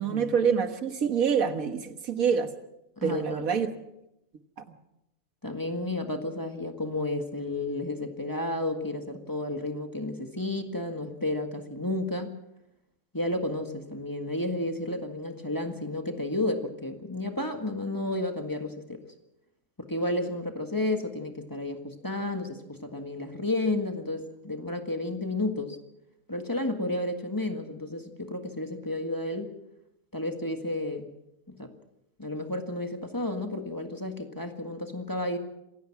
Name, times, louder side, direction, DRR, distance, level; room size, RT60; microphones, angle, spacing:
voice 1, 0.0-2.5 3.0-3.7, right 6 dB, 85° right, 1.9 m, -26 dB
voice 2, 3.0-3.6 5.4-12.3 13.1-19.0 19.8-25.8 26.3-29.5 30.1-31.1 31.5-31.7 32.2-35.4, left 2 dB, 15° left, 1.8 m, -32 dB
26.5 x 16.5 x 6.0 m
omnidirectional pair, 1.4 m